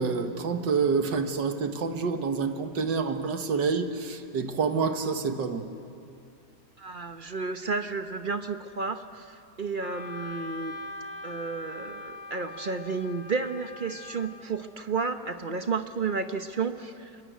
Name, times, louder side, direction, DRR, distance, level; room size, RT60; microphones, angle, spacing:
voice 1, 0.0-5.6, right 5 dB, 85° right, 7 dB, 2.1 m, -28 dB
voice 2, 6.8-10.7 11.2-17.2, right 4 dB, 40° right, 8 dB, 0.8 m, -32 dB
Wind instrument woodwind instrument, 9.8-14.5, left 3 dB, 60° left, 2.1 m, -42 dB
24.5 x 22.5 x 9.3 m, 2.6 s
omnidirectional pair, 1.9 m